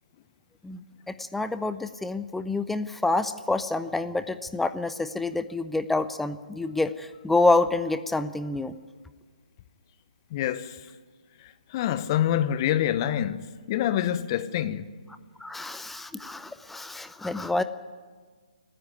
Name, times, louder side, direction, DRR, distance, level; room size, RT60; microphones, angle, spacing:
voice 1, 1.1-8.7 15.4-17.6, left 2 dB, 5° left, 0.5 m, -27 dB
voice 2, 10.3-10.8 11.7-13.4 13.7-14.9, left 11 dB, 30° left, 1.0 m, -26 dB
29.0 x 10.0 x 9.6 m
figure-of-eight pair, 140°, 4 cm